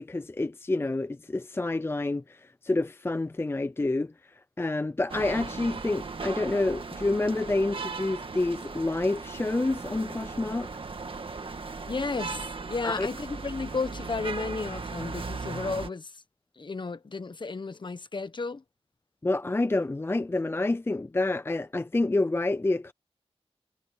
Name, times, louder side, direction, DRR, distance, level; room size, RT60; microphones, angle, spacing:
voice 1, 0.0-4.1 4.6-10.7 12.8-13.1 19.2-22.9, left 2 dB, 20° left, 0.5 m, -28 dB
sound 1, 5.1-15.9, right 4 dB, 55° right, 1.8 m, -37 dB
voice 2, 11.9-16.1 16.6-18.6, left 4 dB, 45° left, 1.3 m, -33 dB
wide cardioid pair, 90°, 11 cm